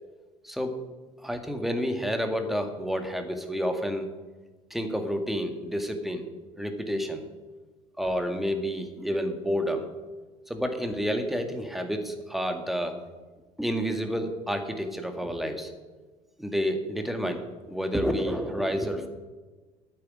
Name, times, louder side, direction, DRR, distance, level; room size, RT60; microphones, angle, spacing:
voice 1, 1.2-4.1 4.7-6.2 6.6-7.2 8.0-9.8 10.5-13.0 13.6-15.7 16.4-19.1, equal, ahead, 5 dB, 2.0 m, -29 dB
9.2 x 8.9 x 9.5 m, 1.3 s
figure-of-eight pair, 60°, 19 cm